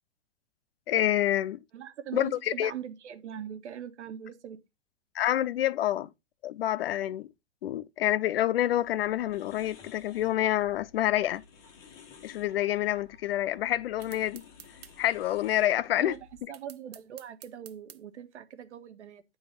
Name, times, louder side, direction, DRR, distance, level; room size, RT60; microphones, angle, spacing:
voice 1, 0.9-1.6 2.1-2.7 5.1-6.1 6.4-7.3 7.6-11.4 12.2-14.4 15.0-16.1, left 13 dB, 60° left, 0.6 m, -27 dB
voice 2, 1.7-4.6 12.9-13.0 15.9-16.2 16.5-19.2, right 9 dB, 85° right, 1.4 m, -41 dB
sound 1, 8.7-16.4, left 6 dB, 10° left, 0.5 m, -55 dB
sound 2, 14.0-15.0 16.5-18.0, right 11 dB, 60° right, 0.9 m, -50 dB
9.7 x 4.0 x 5.2 m
hypercardioid pair, 165°, 34 cm